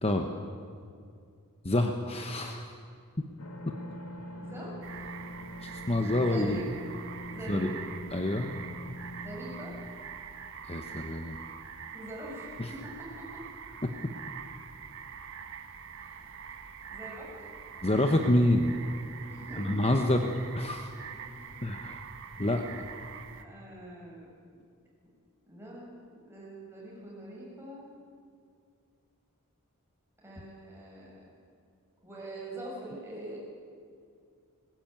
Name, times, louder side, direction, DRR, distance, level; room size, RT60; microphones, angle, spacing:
voice 1, 1.6-2.7 3.7-3.8 5.6-6.6 7.5-7.7 8.1-8.5 10.7-11.4 12.6-12.7 13.8-14.1 17.8-18.7 19.5-20.9 21.6-22.0 22.4-22.9, left 1 dB, 25° left, 5 dB, 1.1 m, -27 dB
sound 1, 3.4-9.9, equal, 85° left, 2.7 m, -43 dB
voice 2, 4.4-5.1 6.2-6.7 7.3-7.7 9.2-9.8 11.9-13.4 16.0-16.5 16.9-17.5 19.3-20.1 21.1-21.6 23.4-24.3 25.5-25.9 26.2-27.9 30.2-31.2 32.0-33.4, right 1 dB, 10° right, -4 dB, 7.1 m, -44 dB
sound 2, 4.8-23.4, right 7 dB, 60° right, 1.4 m, -44 dB
20.5 x 19.0 x 9.0 m, 2.3 s
head